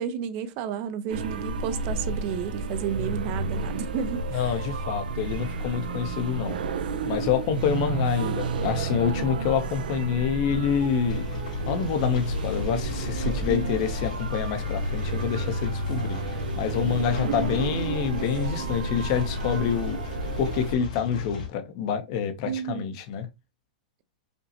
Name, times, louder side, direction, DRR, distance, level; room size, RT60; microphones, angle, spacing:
voice 1, 0.0-4.7 13.5-13.8 17.0-17.4 22.4-22.9, right 8 dB, 35° right, 0.5 m, -32 dB
sound 1, 1.1-20.7, right 4 dB, 85° right, 0.6 m, -31 dB
voice 2, 4.3-6.6 7.0-11.3 11.7-20.0 20.4-23.3, left 8 dB, 45° left, 0.7 m, -27 dB
sound 2, 11.1-21.5, left 5 dB, 65° left, 2.4 m, -34 dB
5.1 x 2.1 x 2.8 m
supercardioid pair, 155°, 5 cm